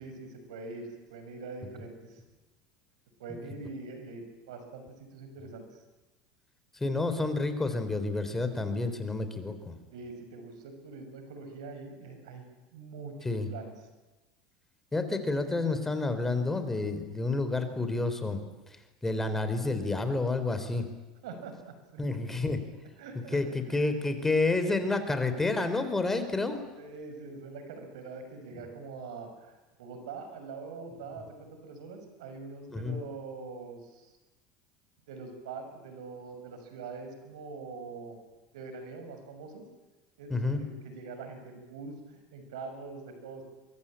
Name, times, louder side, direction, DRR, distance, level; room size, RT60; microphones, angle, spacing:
voice 1, 0.0-2.2 3.2-5.6 9.9-13.7 21.2-22.2 23.0-23.9 26.7-34.1 35.1-38.2 38.5-39.6 40.2-43.4, right 4 dB, 85° right, 7 dB, 6.3 m, -44 dB
voice 2, 6.8-9.8 13.2-13.5 14.9-18.4 19.0-20.9 22.0-22.6 23.3-26.6 32.7-33.0 40.3-40.6, left 3 dB, 10° left, 9 dB, 3.8 m, -29 dB
23.5 x 23.0 x 9.0 m, 1.2 s
supercardioid pair, 105°, 3 cm